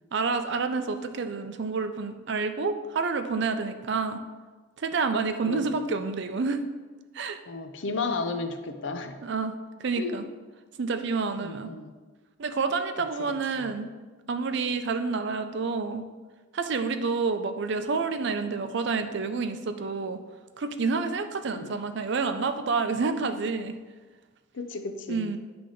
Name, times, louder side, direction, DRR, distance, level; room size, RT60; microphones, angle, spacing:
voice 1, 0.1-4.2 4.8-6.7 7.1-7.4 9.2-9.5 9.8-10.2 10.8-11.7 12.4-13.9 14.3-16.0 16.5-20.2 20.6-23.8 25.1-25.4, right 4 dB, 60° right, 8 dB, 0.5 m, -28 dB
voice 2, 7.5-9.2 10.0-10.3 11.4-12.0 13.2-13.3 13.6-13.7 21.5-21.7 24.5-25.3, left 3 dB, 65° left, 7 dB, 0.6 m, -33 dB
10.0 x 3.4 x 3.8 m, 1.3 s
head